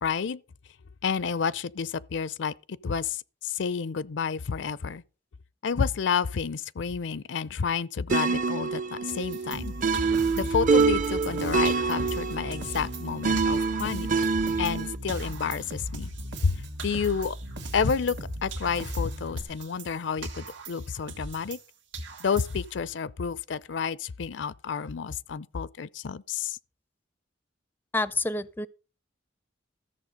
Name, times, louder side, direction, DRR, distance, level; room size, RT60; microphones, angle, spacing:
voice 1, 0.0-0.4 1.0-3.2 3.4-5.0 5.6-9.8 10.3-14.1 14.6-16.1 16.4-16.6 16.8-17.3 17.7-18.2 18.4-21.6 22.2-26.6, left 6 dB, 70° left, 0.5 m, -30 dB
sound 1, 8.1-15.0, right 4 dB, 45° right, 0.7 m, -26 dB
sound 2, 9.1-11.4 11.7-14.8 15.1-18.3 18.5-21.7 21.9-22.8, right 3 dB, 90° right, 2.1 m, -42 dB
Bass guitar, 9.5-19.4, equal, 65° right, 1.7 m, -38 dB
voice 2, 27.9-28.7, left 2 dB, 10° left, 0.4 m, -28 dB
14.0 x 6.9 x 5.2 m
head